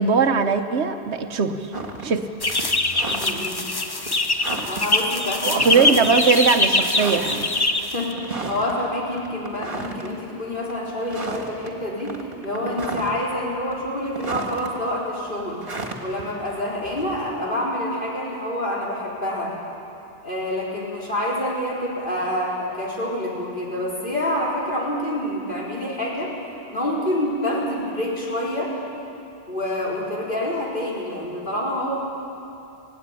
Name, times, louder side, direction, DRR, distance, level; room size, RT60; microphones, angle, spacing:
voice 1, 0.0-1.7 2.0-2.3 5.4-7.5, right 5 dB, 80° right, 8 dB, 1.2 m, -20 dB
sound 1, 1.7-2.1 2.4-3.6 4.0-4.1 4.4-4.9 5.6-6.2 6.4-6.5 6.9-7.6 8.1-8.7 9.1-10.1 10.5-10.7 11.0-11.7 12.0-13.3 13.7-14.7 15.6-17.3, right 3 dB, 50° right, 1.9 m, -33 dB
sound 2, 2.4-8.1, left 2 dB, 25° left, 0.9 m, -22 dB
voice 2, 3.1-3.6 4.7-6.2 7.9-8.2 8.5-15.6 16.0-19.5 20.2-26.4 26.7-28.8 29.5-31.9, left 1 dB, 50° left, -5 dB, 4.2 m, -27 dB
17.0 x 17.0 x 9.8 m, 2.7 s
omnidirectional pair, 1.1 m